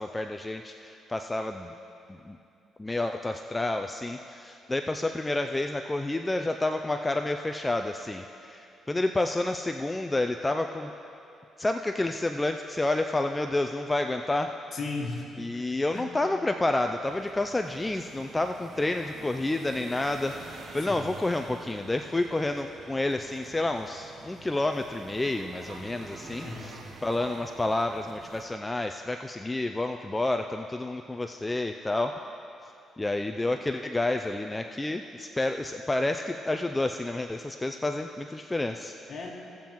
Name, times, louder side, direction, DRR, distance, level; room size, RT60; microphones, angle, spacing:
voice 1, 0.0-1.7 2.1-2.4 2.8-10.9 11.6-14.5 15.4-26.7 27.0-32.3 33.0-38.9, left 2 dB, 15° left, 5 dB, 0.3 m, -29 dB
voice 2, 14.7-15.7 15.9-16.1 20.8-21.1 26.4-26.8 39.1-39.3, left 3 dB, 50° left, -1 dB, 1.7 m, -36 dB
sound 1, 17.0-28.5, right 3 dB, 55° right, 0.9 m, -47 dB
17.0 x 7.1 x 3.0 m, 2.7 s
cardioid pair, 90°, 0 cm